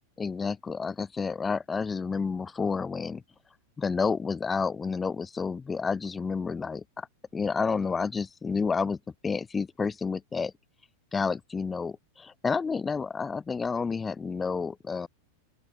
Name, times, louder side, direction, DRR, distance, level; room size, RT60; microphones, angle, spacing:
voice 1, 0.2-3.2 3.8-7.1 7.3-9.0 9.2-10.5 11.1-15.1, left 5 dB, 15° left, 0.4 m, -30 dB
open air
figure-of-eight pair, 90°, 0 cm